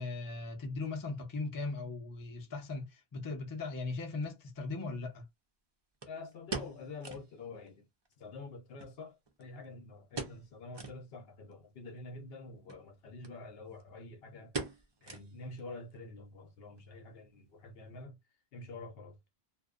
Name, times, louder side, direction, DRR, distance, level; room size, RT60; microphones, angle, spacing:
voice 1, 0.0-5.2, left 3 dB, 25° left, 0.5 m, -38 dB
sound 1, 3.9-4.0 6.0-7.4 7.7-7.8 8.1-8.2 8.8-9.7 10.1-10.5 10.7-11.0 11.5-11.6 12.6-12.8 13.2-13.4 13.6-14.0 14.5-15.6 15.9-16.0 16.6-16.9 17.2-17.3, right 4 dB, 45° right, 0.3 m, -42 dB
voice 2, 6.1-7.9 8.2-14.5 15.0-18.2 18.5-19.2, left 3 dB, 65° left, 0.8 m, -47 dB
2.6 x 2.0 x 2.3 m
omnidirectional pair, 1.1 m